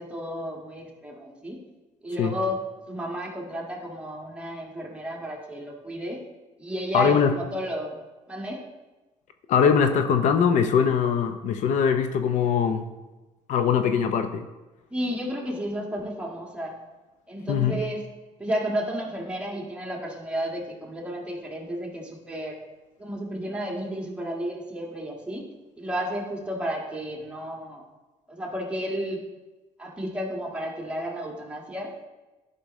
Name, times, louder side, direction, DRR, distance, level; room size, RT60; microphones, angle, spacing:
voice 1, 0.0-1.6 2.0-2.6 2.9-6.2 6.6-8.0 8.3-8.6 14.9-16.8 17.3-18.0 18.4-22.6 23.0-25.5 25.8-27.8 28.3-29.2 29.8-31.9, equal, 10° right, -2 dB, 1.7 m, -32 dB
voice 2, 6.9-7.3 9.5-12.9 13.5-14.4 17.5-17.8, left 7 dB, 70° left, 8 dB, 0.6 m, -22 dB
12.0 x 5.3 x 3.1 m, 1.1 s
cardioid pair, 115°, 13 cm